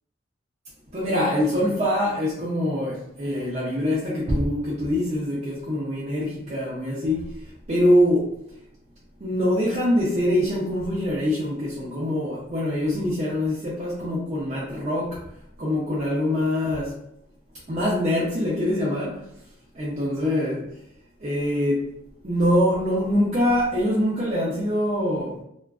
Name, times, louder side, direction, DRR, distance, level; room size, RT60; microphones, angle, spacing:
voice 1, 0.9-8.3 9.2-15.3 15.6-17.0 17.7-19.2 19.7-20.6 21.2-21.9 22.2-25.4, left 1 dB, 35° right, 0.4 m, -24 dB
2.4 x 2.2 x 2.3 m
head